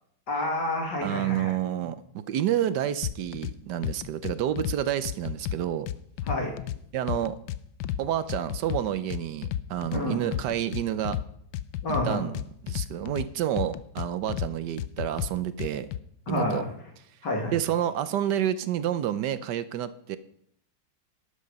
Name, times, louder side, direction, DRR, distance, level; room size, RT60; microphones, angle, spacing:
voice 1, 0.3-1.5 6.2-6.5 9.9-10.3 11.8-12.3 16.3-16.7 17.2-17.6, left 1 dB, 70° left, 0 dB, 3.2 m, -29 dB
voice 2, 1.0-5.9 6.9-7.4 8.0-11.2 12.0-12.4 12.6-15.9 16.3-16.6 17.5-20.2, right 11 dB, 75° right, 13 dB, 1.2 m, -29 dB
sound 1, 3.0-3.5 3.8-4.8 5.0-6.8 7.1-8.0 8.3-10.0 10.3-11.2 11.5-13.3 13.6-14.5 14.8-16.0, left 11 dB, 90° left, 1.3 m, -31 dB
12.5 x 8.7 x 5.3 m, 0.69 s
omnidirectional pair, 2.0 m